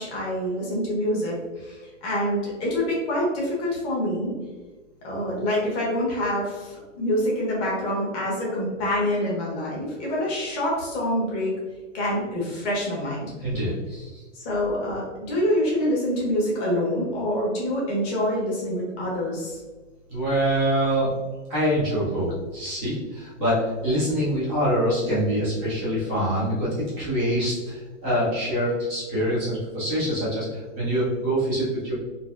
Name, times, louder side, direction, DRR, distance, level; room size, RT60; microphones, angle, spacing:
voice 1, 0.0-4.3 5.0-11.5 11.9-13.2 14.3-19.6, left 1 dB, 30° left, -4 dB, 1.3 m, -26 dB
voice 2, 13.4-14.2 20.1-21.1 21.5-26.7 27.0-31.9, equal, 10° left, -16 dB, 0.3 m, -25 dB
3.9 x 2.6 x 2.4 m, 1.3 s
hypercardioid pair, 150°, 38 cm